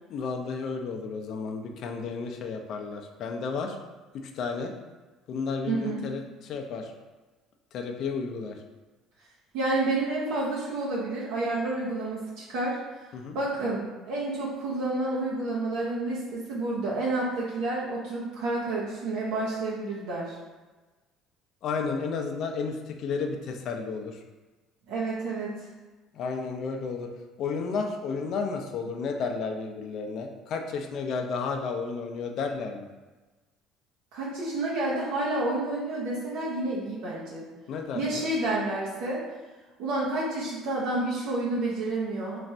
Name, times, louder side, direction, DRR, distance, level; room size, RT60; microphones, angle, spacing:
voice 1, 0.1-3.8 4.1-4.7 5.3-6.9 7.7-8.6 13.1-13.4 21.6-24.2 26.1-27.1 27.4-32.9 37.7-38.2, left 5 dB, 55° left, 3 dB, 0.5 m, -32 dB
voice 2, 5.7-6.0 9.5-12.8 13.3-20.3 24.9-25.5 34.1-37.5 37.9-39.2 39.8-42.4, right 2 dB, 80° right, -6 dB, 0.9 m, -29 dB
3.1 x 2.5 x 4.2 m, 1.2 s
cardioid pair, 130°, 0 cm